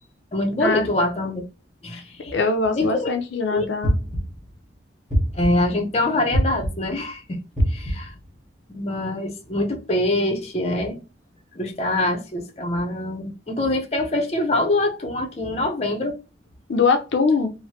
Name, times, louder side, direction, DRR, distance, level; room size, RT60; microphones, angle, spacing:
voice 1, 0.3-1.4 1.8-2.3 2.7-3.1 3.5-3.7 5.3-7.4 7.7-8.1 8.7-11.0 11.5-16.2, left 1 dB, 35° left, 0.6 m, -24 dB
voice 2, 2.3-3.9 16.7-17.5, left 4 dB, 75° left, 0.5 m, -22 dB
sound 1, 3.8-4.5 5.1-5.7 6.3-7.0 7.6-8.2, equal, ahead, 1.3 m, -23 dB
3.1 x 2.1 x 2.8 m
head